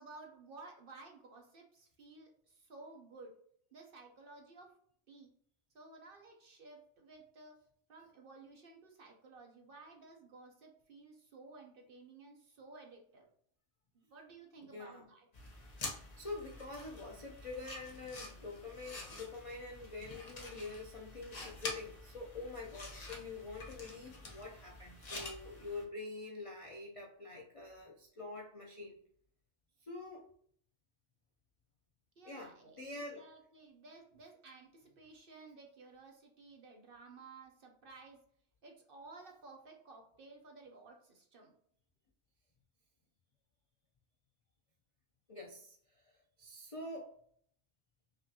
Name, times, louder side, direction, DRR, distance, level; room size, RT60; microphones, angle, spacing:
voice 1, 0.0-3.4 3.7-4.8 5.1-5.3 5.7-7.6 7.9-13.3 13.9-15.3 32.2-38.2 38.6-41.5, right 3 dB, 55° right, 2 dB, 0.7 m, -55 dB
voice 2, 14.7-15.1 16.2-29.0 29.8-30.3 32.2-33.2 45.3-47.1, left 3 dB, 55° left, -1 dB, 0.3 m, -46 dB
sound 1, 15.3-25.8, left 2 dB, 35° left, 0.8 m, -48 dB
5.1 x 2.4 x 2.7 m, 0.64 s
omnidirectional pair, 1.4 m